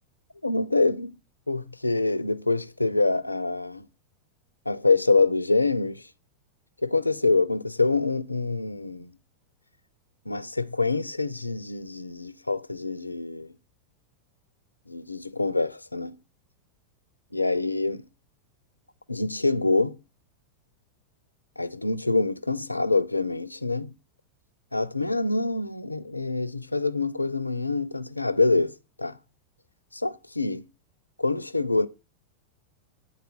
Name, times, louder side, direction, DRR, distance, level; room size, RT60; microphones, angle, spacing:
voice 1, 0.4-1.1 1.5-3.9 4.7-6.0 6.8-9.1 10.3-13.5 14.9-16.2 17.3-18.1 19.1-20.0 21.6-23.9 24.7-28.7 29.0-29.2 29.9-30.7 31.2-31.9, left 3 dB, 85° left, 0.4 m, -25 dB
8.3 x 3.9 x 4.1 m
figure-of-eight pair, 90°, 0 cm